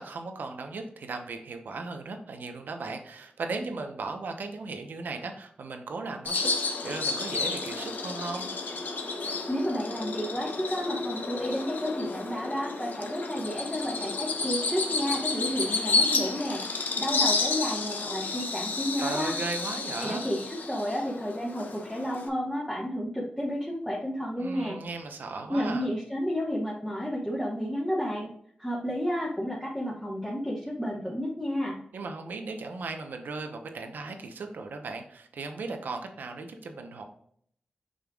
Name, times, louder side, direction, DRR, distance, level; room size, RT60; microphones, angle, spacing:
voice 1, 0.0-8.5 19.0-20.3 24.4-25.9 31.9-37.0, right 3 dB, 80° right, 5 dB, 1.0 m, -37 dB
Bird vocalization bird call bird song, 6.3-22.3, left 3 dB, 75° left, 1.0 m, -31 dB
voice 2, 9.5-19.4 20.0-24.8 25.5-28.3 28.6-31.8, equal, 5° left, -5 dB, 1.5 m, -31 dB
7.4 x 5.5 x 2.5 m, 0.64 s
wide cardioid pair, 90°, 3 cm